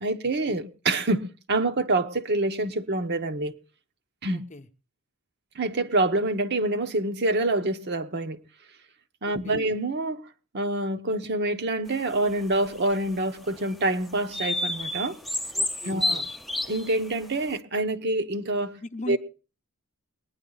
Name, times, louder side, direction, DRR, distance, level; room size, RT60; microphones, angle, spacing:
voice 1, 0.0-3.5 4.2-4.4 5.5-8.4 9.2-10.2 10.5-15.2 15.8-16.2 16.7-18.8 19.1-19.2, right 2 dB, 50° right, 0.9 m, -26 dB
voice 2, 4.3-4.7 9.2-9.6 15.5-16.3 18.8-19.2, left 2 dB, 35° left, 0.8 m, -39 dB
sound 1, 12.1-13.1 13.7-13.8 14.3-17.2, left 1 dB, ahead, 0.6 m, -30 dB
22.0 x 9.7 x 3.9 m
head